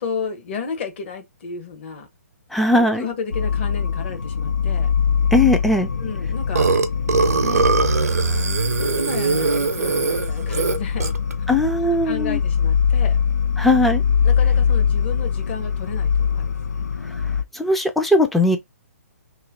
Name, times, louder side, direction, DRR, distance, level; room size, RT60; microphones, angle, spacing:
voice 1, 0.0-2.1 2.7-4.9 6.0-6.7 7.4-7.7 8.0-8.7 9.0-11.1 12.0-13.2 14.2-16.9, left 5 dB, 45° left, 1.3 m, -33 dB
voice 2, 2.5-3.1 5.3-5.9 11.5-12.4 13.6-14.0 17.5-18.6, left 1 dB, ahead, 0.5 m, -18 dB
sound 1, 3.3-17.4, left 6 dB, 75° left, 0.4 m, -22 dB
Burping eructation, 6.5-11.3, right 4 dB, 70° right, 0.7 m, -21 dB
3.1 x 2.7 x 3.8 m
figure-of-eight pair, 135°, 9 cm